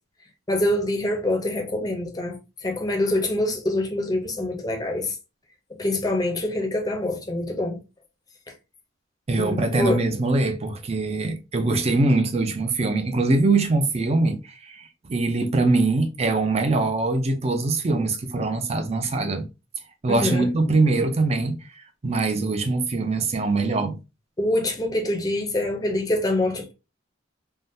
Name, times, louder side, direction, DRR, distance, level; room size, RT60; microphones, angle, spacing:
voice 1, 0.5-5.1 5.8-7.8 9.4-10.0 20.1-20.5 24.4-26.7, left 1 dB, 20° left, 0.6 m, -25 dB
voice 2, 9.3-19.5 20.0-21.6 22.0-24.0, right 3 dB, 35° right, 0.5 m, -23 dB
3.5 x 2.2 x 2.6 m
head